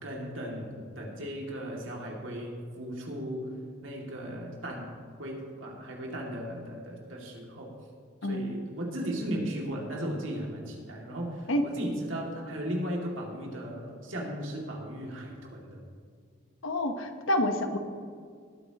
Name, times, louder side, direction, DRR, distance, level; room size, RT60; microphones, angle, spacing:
voice 1, 0.0-3.5 3.8-4.9 5.2-7.7 8.2-15.8, equal, 85° right, -1 dB, 2.4 m, -36 dB
voice 2, 8.2-8.6 11.5-11.7 16.6-17.8, left 1 dB, 90° left, 6 dB, 1.1 m, -28 dB
19.0 x 9.0 x 3.0 m, 2.1 s
head